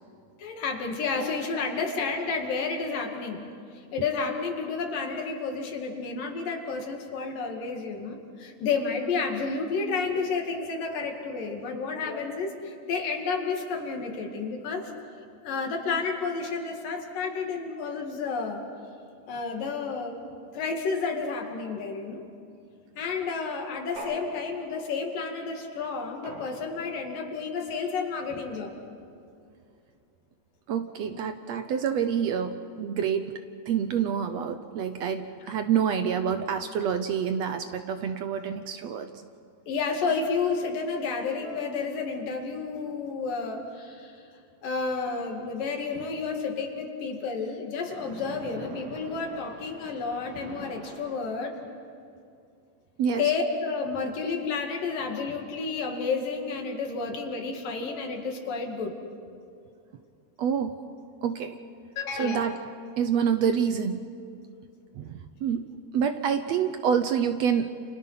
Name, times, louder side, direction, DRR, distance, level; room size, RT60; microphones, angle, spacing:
voice 1, 0.4-3.5 3.7-14.8 15.4-18.6 19.3-20.2 20.5-22.2 23.0-28.7 39.7-44.2 44.6-51.6 53.2-58.9 62.0-62.6, left 4 dB, 90° left, 2 dB, 4.1 m, -31 dB
sound 1, 24.0-25.0 26.2-27.1, right 1 dB, 85° right, 6.9 m, -43 dB
voice 2, 30.7-39.1 53.0-53.3 60.4-60.8 61.2-61.6 62.2-62.5 63.0-64.1 65.0-67.8, right 7 dB, 70° right, 8 dB, 1.7 m, -27 dB
Splash splatter, 47.8-51.9, right 3 dB, 40° right, 2.1 m, -45 dB
30.0 x 29.0 x 5.8 m, 2.4 s
omnidirectional pair, 3.8 m